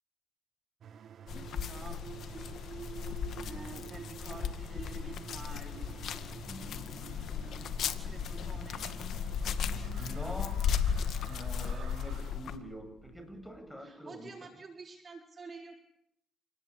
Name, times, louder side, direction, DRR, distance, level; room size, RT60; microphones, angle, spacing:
sound 1, 0.8-11.3, right 7 dB, 60° right, 1.5 m, -48 dB
voice 1, 1.0-2.6 3.4-5.9 7.3-8.9 13.8-16.0, right 4 dB, 35° right, 3 dB, 4.0 m, -49 dB
sound 2, 1.3-12.6, left 7 dB, 70° left, 2.1 m, -36 dB
voice 2, 3.4-3.7 6.5-6.8 10.0-10.6 11.3-14.3, equal, 5° left, 7 dB, 7.9 m, -45 dB
sound 3, 8.3-13.6, right 6 dB, 80° right, 7.7 m, -54 dB
29.0 x 19.5 x 8.7 m, 0.74 s
cardioid pair, 90°, 0 cm